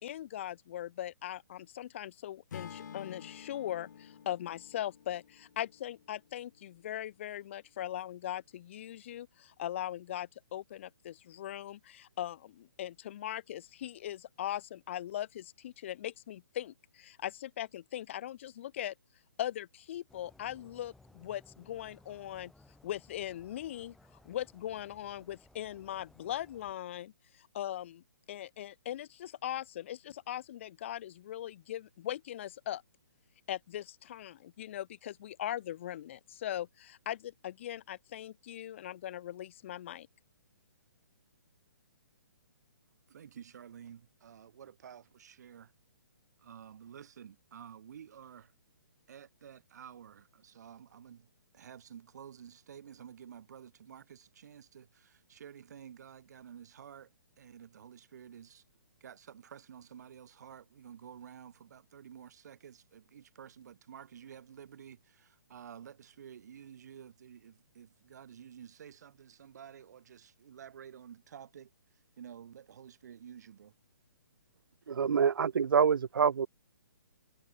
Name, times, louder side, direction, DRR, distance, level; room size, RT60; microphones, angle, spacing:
voice 1, 0.0-18.9 19.4-22.5 22.8-23.9 24.2-27.1 27.4-32.8 33.5-40.1, left 12 dB, 35° left, 0.7 m, -40 dB
Acoustic guitar / Strum, 2.5-6.7, left 8 dB, 55° left, 2.5 m, -50 dB
sound 1, 20.1-26.7, left 2 dB, ahead, 1.3 m, -61 dB
voice 2, 43.1-45.7 46.4-48.5 49.1-57.1 57.4-58.6 59.0-71.7 72.2-73.7 74.5-74.6, right 8 dB, 55° right, 2.1 m, -51 dB
voice 3, 74.9-76.5, right 7 dB, 90° right, 0.5 m, -26 dB
hypercardioid pair, 165°, 11 cm